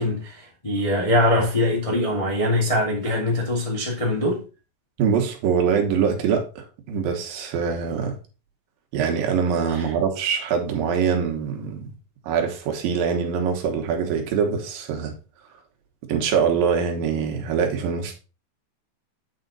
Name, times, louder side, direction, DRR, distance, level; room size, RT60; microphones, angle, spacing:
voice 1, 0.0-4.4 9.7-9.8, left 1 dB, 15° left, 1.1 m, -22 dB
voice 2, 5.0-8.2 8.9-11.9 12.2-15.1 16.1-18.2, right 6 dB, 75° right, 2.9 m, -23 dB
8.9 x 5.0 x 4.0 m
omnidirectional pair, 4.3 m